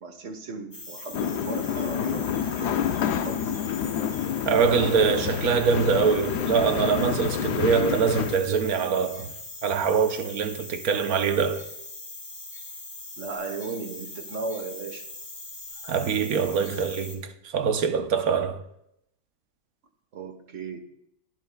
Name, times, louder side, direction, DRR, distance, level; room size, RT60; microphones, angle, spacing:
voice 1, 0.0-3.6 13.2-15.1 16.7-16.8 20.1-20.8, right 4 dB, 55° right, 1.4 m, -36 dB
sound 1, 0.7-17.2, left 2 dB, 30° left, 3.3 m, -41 dB
sound 2, 1.1-8.4, left 9 dB, 85° left, 1.2 m, -28 dB
voice 2, 4.4-9.3 9.6-11.6 15.8-18.6, right 6 dB, 70° right, 1.2 m, -24 dB
22.0 x 10.5 x 2.2 m
omnidirectional pair, 1.7 m